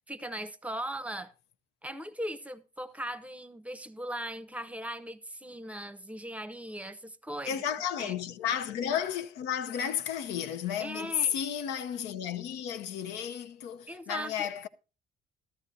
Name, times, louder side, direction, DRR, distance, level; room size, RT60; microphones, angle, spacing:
voice 1, 0.1-1.3 1.8-7.6 8.0-8.1 10.8-11.3 13.9-14.5, right 1 dB, 10° right, 0.7 m, -39 dB
voice 2, 7.4-14.7, left 9 dB, 85° left, 0.8 m, -33 dB
14.0 x 13.0 x 2.7 m
cardioid pair, 110°, 17 cm